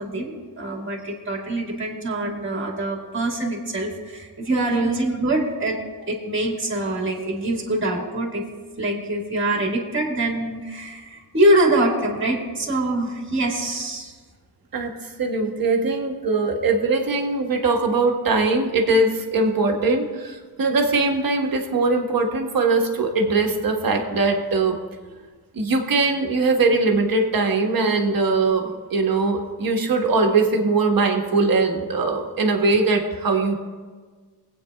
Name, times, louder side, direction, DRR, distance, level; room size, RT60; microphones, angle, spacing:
voice 1, 0.0-8.4 8.8-14.1, right 1 dB, 30° right, 0 dB, 1.8 m, -24 dB
voice 2, 4.5-4.9 14.7-24.8 25.5-33.5, right 3 dB, 55° right, 2 dB, 1.4 m, -21 dB
24.0 x 8.6 x 2.3 m, 1.5 s
wide cardioid pair, 105°, 40 cm